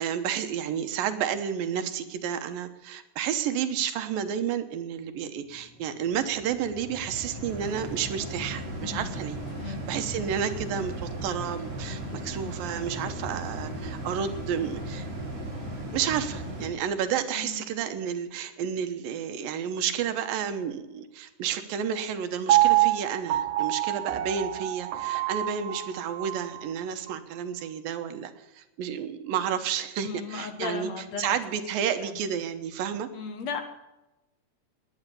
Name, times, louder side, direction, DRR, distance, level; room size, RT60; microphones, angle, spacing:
voice 1, 0.0-9.4 9.7-15.1 15.9-30.9 31.2-33.1, right 8 dB, 90° right, 9 dB, 2.9 m, -31 dB
sound 1, 5.4-16.7, right 1 dB, 55° right, 7.7 m, -37 dB
voice 2, 8.8-9.2 9.6-9.8 17.3-17.7 30.0-31.4 32.0-32.1 33.1-33.6, left 5 dB, 60° left, 7 dB, 2.5 m, -36 dB
Piano, 22.5-26.6 27.1-27.2, right 15 dB, 70° right, 2.6 m, -26 dB
19.0 x 10.0 x 6.9 m, 1.0 s
omnidirectional pair, 3.9 m